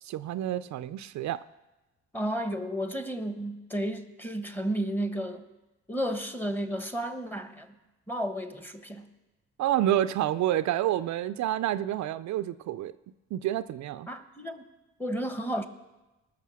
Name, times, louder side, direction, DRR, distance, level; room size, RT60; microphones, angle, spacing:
voice 1, 0.0-1.4 9.6-12.9 13.3-14.1, right 12 dB, 65° right, 13 dB, 0.4 m, -28 dB
voice 2, 2.1-5.4 5.9-7.7 8.1-9.1 14.1-14.6 15.0-15.7, equal, 5° left, 8 dB, 1.1 m, -32 dB
19.0 x 6.5 x 6.2 m, 1.1 s
cardioid pair, 90°, 30 cm